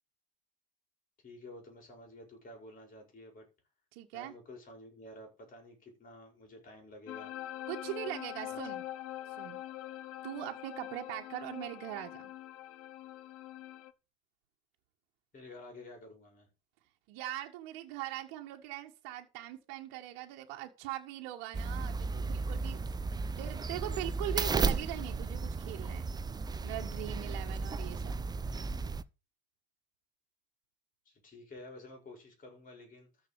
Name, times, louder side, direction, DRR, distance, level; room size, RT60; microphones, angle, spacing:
voice 1, 1.2-3.5 4.1-7.3 8.5-8.6 15.3-16.5 31.1-33.1, left 1 dB, 25° left, 5.5 m, -51 dB
voice 2, 3.9-4.3 7.7-8.8 9.4-9.6 10.2-12.3 17.1-22.8 23.4-26.0 26.6-28.2, right 14 dB, 60° right, 1.8 m, -41 dB
sound 1, 7.1-13.9, left 14 dB, 50° left, 1.1 m, -44 dB
sound 2, 21.5-29.0, right 4 dB, 15° right, 0.6 m, -34 dB
13.5 x 4.9 x 6.9 m
hypercardioid pair, 85°, 30 cm